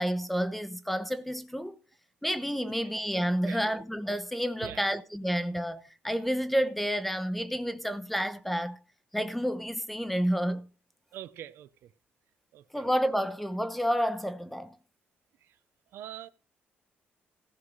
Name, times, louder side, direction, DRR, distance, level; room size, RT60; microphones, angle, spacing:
voice 1, 0.0-1.8 2.2-8.8 9.1-10.7 12.7-14.8, equal, 5° left, 0.9 m, -30 dB
voice 2, 3.4-3.8 4.6-4.9 11.1-11.9 12.5-12.9 15.9-16.3, right 12 dB, 80° right, 0.8 m, -44 dB
15.5 x 5.6 x 6.4 m
cardioid pair, 120°, 4 cm